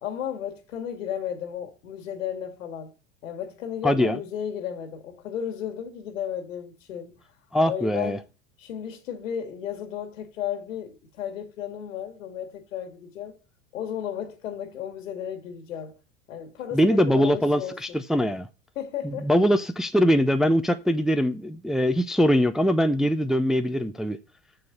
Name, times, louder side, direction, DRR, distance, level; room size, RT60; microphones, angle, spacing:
voice 1, 0.0-2.9 3.2-7.2 7.6-8.2 8.6-13.4 13.7-15.9 16.3-18.0 18.8-19.3, left 9 dB, 85° left, 2.0 m, -34 dB
voice 2, 3.8-4.2 7.5-8.2 16.7-18.5 19.0-24.2, equal, ahead, 0.5 m, -22 dB
6.9 x 6.7 x 5.4 m
hypercardioid pair, 95°, 38 cm